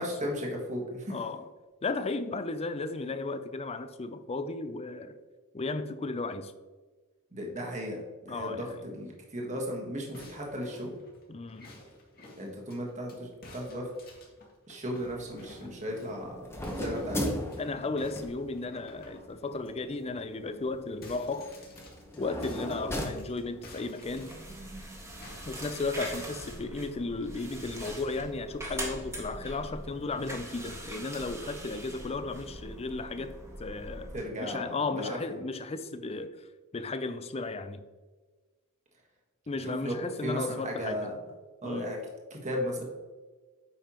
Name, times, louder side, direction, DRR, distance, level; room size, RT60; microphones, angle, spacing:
voice 1, 0.0-1.2 7.3-8.0 8.2-10.9 12.4-13.9 14.7-16.5 16.7-17.3 34.1-35.2 39.6-40.0 40.2-41.2 41.6-42.0 42.3-42.9, equal, 35° right, 1.4 m, -35 dB
voice 2, 1.1-1.5 1.8-5.2 5.5-6.5 8.3-8.9 11.3-11.7 17.6-21.5 22.2-24.4 25.5-34.1 34.4-36.4 36.7-37.8 39.5-41.1 41.6-42.0, left 3 dB, 30° left, 0.5 m, -35 dB
sound 1, 10.1-13.2 13.4-16.2 16.6-17.6 18.0-19.7 20.1-20.3 20.6-24.9 25.2-26.4, left 2 dB, 45° left, 1.8 m, -52 dB
sound 2, 15.0-23.9, equal, 10° left, 1.1 m, -39 dB
sound 3, 24.0-34.2, right 1 dB, 15° right, 1.5 m, -42 dB
8.6 x 5.5 x 3.0 m
head